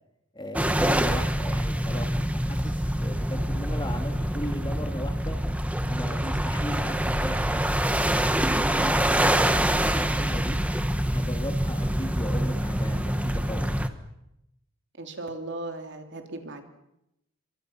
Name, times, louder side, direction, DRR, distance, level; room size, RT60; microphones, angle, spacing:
voice 1, 0.3-5.4 5.9-10.6 11.1-13.7, left 1 dB, 20° left, 5 dB, 2.5 m, -37 dB
sound 1, 0.5-13.9, right 1 dB, 5° right, 1.3 m, -25 dB
voice 2, 15.0-16.6, right 2 dB, 55° right, 4 dB, 3.1 m, -37 dB
28.5 x 24.0 x 5.8 m, 0.85 s
head